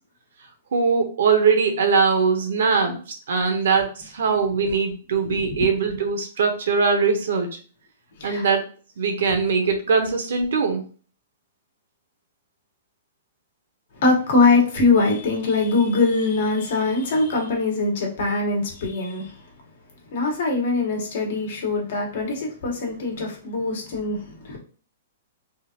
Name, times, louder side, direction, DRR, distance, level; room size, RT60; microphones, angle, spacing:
voice 1, 0.7-7.5 8.2-8.6 9.0-10.8, right 5 dB, 70° right, 4 dB, 0.9 m, -21 dB
voice 2, 13.9-19.4 20.1-24.6, left 3 dB, 60° left, 0 dB, 1.4 m, -22 dB
3.6 x 2.5 x 2.9 m, 0.40 s
hypercardioid pair, 155°, 0 cm